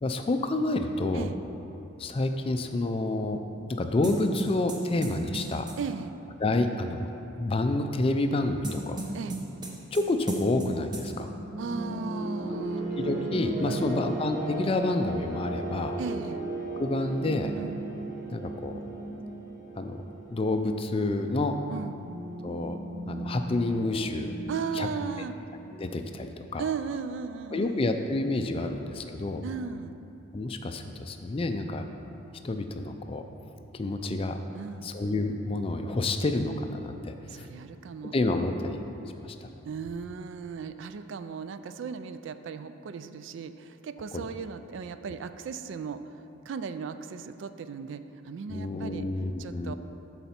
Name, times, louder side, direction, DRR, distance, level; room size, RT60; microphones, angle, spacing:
voice 1, 0.0-1.3 2.0-3.4 3.8-5.7 6.4-7.1 7.3-9.0 9.9-11.3 12.5-12.7 13.0-16.0 16.8-17.5 18.3-18.8 19.8-20.0 20.3-21.5 22.4-22.8 23.1-24.3 24.7-24.9 25.8-26.6 27.5-29.4 30.3-31.9 32.4-33.2 33.7-34.4 34.8-37.5 38.1-38.8 39.2-39.5 44.1-44.3 48.5-49.7, left 2 dB, 30° left, 6 dB, 0.4 m, -29 dB
sound 1, 4.0-5.8 8.6-10.0 10.3-10.7 10.9-11.0, right 2 dB, 20° right, 0.8 m, -34 dB
voice 2, 5.8-6.2 9.1-9.4 11.6-12.9 13.7-14.1 16.0-16.4 17.6-17.8 21.7-22.0 24.5-25.3 26.6-27.9 29.4-30.0 34.5-34.9 37.3-38.1 39.6-49.1 49.4-49.7, right 5 dB, 65° right, 11 dB, 0.3 m, -36 dB
sound 2, 11.1-25.8, right 2 dB, 40° right, 1.5 m, -36 dB
12.5 x 4.2 x 4.4 m, 2.9 s
head